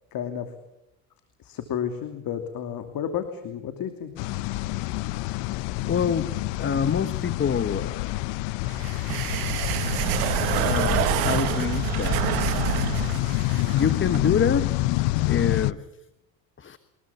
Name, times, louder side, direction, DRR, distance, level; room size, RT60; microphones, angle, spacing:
voice 1, 0.1-0.5 1.4-4.1, left 8 dB, 50° left, 7 dB, 2.8 m, -31 dB
sound 1, 4.2-15.7, left 18 dB, 70° left, 1.0 m, -27 dB
voice 2, 5.9-8.1 9.8-10.0 10.6-12.4 13.7-14.8 15.3-15.9 16.6-16.8, left 7 dB, 25° left, 12 dB, 1.3 m, -26 dB
sound 2, 8.7-14.3, right 17 dB, 80° right, 1.3 m, -27 dB
24.0 x 21.0 x 7.1 m, 0.89 s
supercardioid pair, 100°, 44 cm